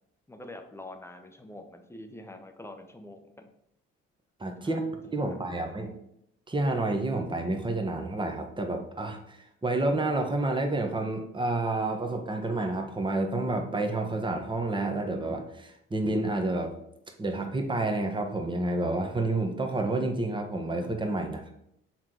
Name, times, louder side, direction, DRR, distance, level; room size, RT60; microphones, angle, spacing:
voice 1, 0.3-3.5 4.6-6.0, left 1 dB, 10° left, 6 dB, 1.0 m, -46 dB
voice 2, 4.4-4.8 5.1-5.9 6.5-16.7 17.2-21.5, right 2 dB, 15° right, 3 dB, 1.2 m, -29 dB
5.9 x 3.8 x 4.6 m, 0.77 s
hypercardioid pair, 60°, 30 cm